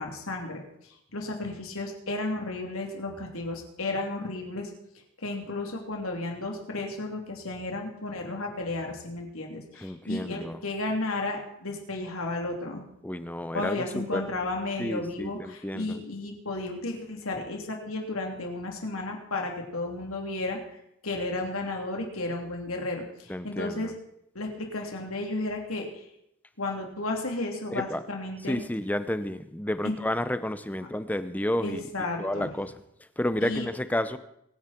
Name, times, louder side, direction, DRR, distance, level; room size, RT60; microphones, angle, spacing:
voice 1, 0.0-4.7 5.2-12.8 13.5-20.8 21.0-23.9 24.3-26.0 26.6-28.6 29.8-30.0 31.6-32.5 33.4-33.7, left 2 dB, 90° left, 1 dB, 3.3 m, -33 dB
voice 2, 9.8-10.6 13.0-14.2 14.8-16.0 23.3-23.9 27.7-28.0 28.5-31.8 32.2-32.7 33.2-34.2, left 1 dB, 10° left, 12 dB, 0.7 m, -31 dB
24.0 x 10.0 x 4.5 m, 0.78 s
head